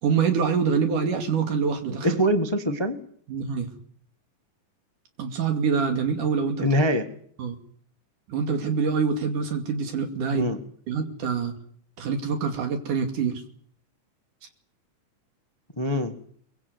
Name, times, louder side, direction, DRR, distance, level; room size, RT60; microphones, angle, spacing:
voice 1, 0.0-2.2 3.3-3.7 5.2-6.7 7.4-7.6 8.3-10.5 10.9-11.5 12.0-13.4, right 6 dB, 80° right, 6 dB, 4.0 m, -25 dB
voice 2, 2.0-3.0 6.6-7.0 10.3-10.6 15.8-16.1, equal, 15° left, 7 dB, 0.8 m, -23 dB
23.5 x 21.5 x 8.0 m, 0.63 s
omnidirectional pair, 3.6 m